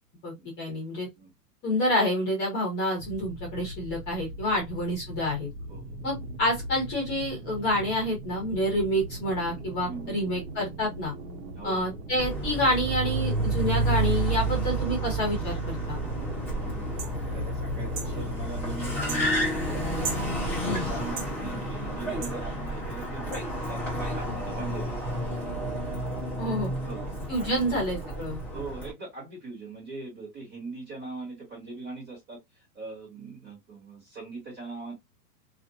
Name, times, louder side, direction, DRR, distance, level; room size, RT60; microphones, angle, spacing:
voice 1, 0.2-1.1 1.6-5.5 6.0-11.1 11.6-16.0 20.6-20.8 26.4-26.7 27.3-28.4, left 1 dB, 20° left, 1.2 m, -28 dB
sound 1, 3.0-20.5, right 2 dB, 80° right, 1.1 m, -40 dB
voice 2, 9.7-10.3 11.6-11.8 16.4-16.9 17.3-19.8 20.2-20.5 20.9-23.4 23.7-25.7 26.4-27.1 27.4-27.8 28.5-34.9, right 3 dB, 20° right, 1.5 m, -41 dB
Car, 12.2-28.9, right 1 dB, 5° left, 0.6 m, -30 dB
sound 2, 17.0-17.1 17.9-18.1 19.1-19.2 20.0-20.3 21.2-21.3 22.2-22.4 23.3-23.4, right 6 dB, 50° right, 1.1 m, -35 dB
2.6 x 2.4 x 2.7 m
hypercardioid pair, 155°, 49 cm